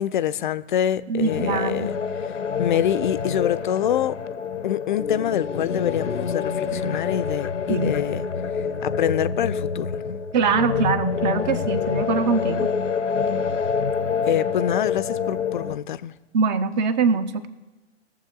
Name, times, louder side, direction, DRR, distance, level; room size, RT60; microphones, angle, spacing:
voice 1, 0.0-1.9 2.2-4.2 4.6-8.2 8.8-10.2 14.3-16.1, left 10 dB, 45° left, 0.4 m, -25 dB
voice 2, 1.1-1.9 7.7-7.9 10.3-12.7 16.3-17.5, right 5 dB, 40° right, 0.8 m, -23 dB
sound 1, 1.3-15.7, left 6 dB, 90° left, 0.7 m, -27 dB
21.5 x 7.3 x 3.8 m
figure-of-eight pair, 115°, 35 cm